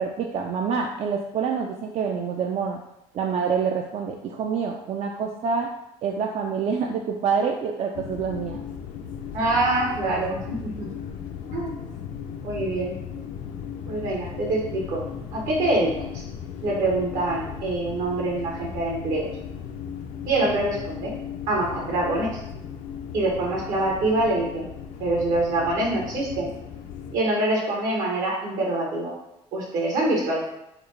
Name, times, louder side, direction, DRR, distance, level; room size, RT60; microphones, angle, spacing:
voice 1, 0.0-2.8 3.1-5.7 6.0-8.6, right 6 dB, 50° right, 2 dB, 0.4 m, -26 dB
sound 1, 7.9-27.2, left 7 dB, 65° left, 0.5 m, -36 dB
voice 2, 9.3-10.9 11.5-11.8 12.4-13.0 13.9-15.0 15.3-16.2 16.6-19.3 20.3-21.1 21.5-22.4 23.1-24.7 25.0-26.5 27.1-29.1 29.5-30.4, right 2 dB, 75° right, -2 dB, 1.2 m, -25 dB
3.9 x 2.3 x 3.2 m, 0.86 s
supercardioid pair, 80°, 14 cm